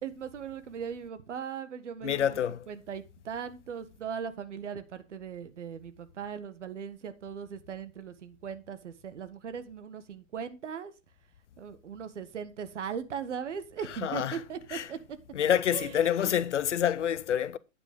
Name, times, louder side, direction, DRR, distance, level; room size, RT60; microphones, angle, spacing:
voice 1, 0.0-2.4 2.7-10.9 11.6-15.2 15.7-16.3, right 7 dB, 60° right, 1.6 m, -39 dB
voice 2, 2.0-2.6 14.0-14.4 14.7-14.9 15.3-17.6, left 9 dB, 60° left, 0.8 m, -27 dB
9.6 x 8.8 x 3.7 m
figure-of-eight pair, 115°, 40 cm